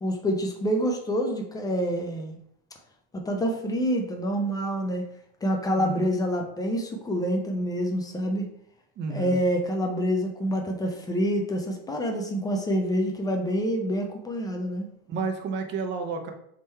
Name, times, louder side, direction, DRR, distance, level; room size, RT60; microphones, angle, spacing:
voice 1, 0.0-2.4 3.3-5.1 5.4-8.5 9.1-14.9, equal, 10° left, 3 dB, 0.5 m, -27 dB
voice 2, 5.8-6.1 9.0-9.4 15.1-16.3, right 4 dB, 35° right, 5 dB, 0.7 m, -31 dB
3.7 x 3.1 x 4.3 m, 0.70 s
supercardioid pair, 140°, 32 cm